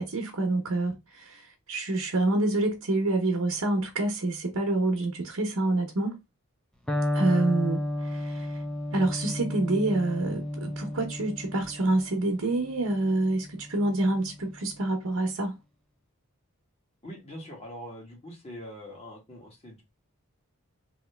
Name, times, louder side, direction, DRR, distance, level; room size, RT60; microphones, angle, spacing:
voice 1, 0.0-6.2 7.1-8.6 8.9-15.6, right 2 dB, 80° right, 0.9 m, -27 dB
Electric guitar, 6.9-14.7, left 1 dB, 5° left, 0.5 m, -33 dB
voice 2, 17.0-19.8, equal, 30° left, 1.5 m, -43 dB
3.1 x 2.8 x 3.3 m
head